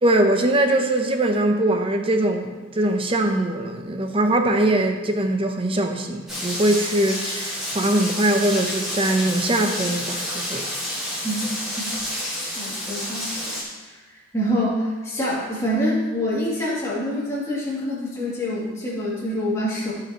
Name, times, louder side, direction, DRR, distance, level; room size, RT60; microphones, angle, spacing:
voice 1, 0.0-10.7, right 1 dB, 25° right, 5 dB, 0.7 m, -22 dB
Rain, 6.3-13.6, left 1 dB, ahead, 3.0 m, -29 dB
voice 2, 12.6-13.6 13.8-14.0 14.3-19.9, equal, 15° left, -8 dB, 2.7 m, -26 dB
16.0 x 5.8 x 3.0 m, 1.3 s
head